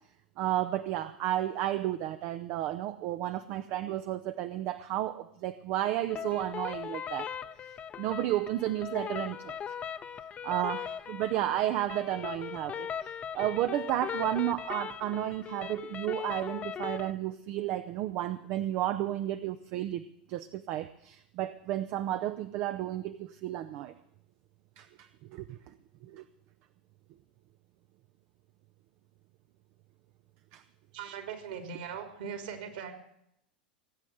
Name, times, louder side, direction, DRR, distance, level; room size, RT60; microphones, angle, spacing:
voice 1, 0.4-7.3 7.6-9.6 10.4-12.9 13.3-20.0 20.3-23.9 24.8-25.6 26.0-26.2 30.5-30.6, right 13 dB, 45° right, 11 dB, 0.7 m, -32 dB
sound 1, 6.1-17.1, left 8 dB, 30° left, 0.9 m, -39 dB
voice 2, 30.9-32.9, right 7 dB, 65° right, 6 dB, 3.5 m, -40 dB
19.0 x 8.5 x 7.8 m, 0.76 s
figure-of-eight pair, 85°, 5 cm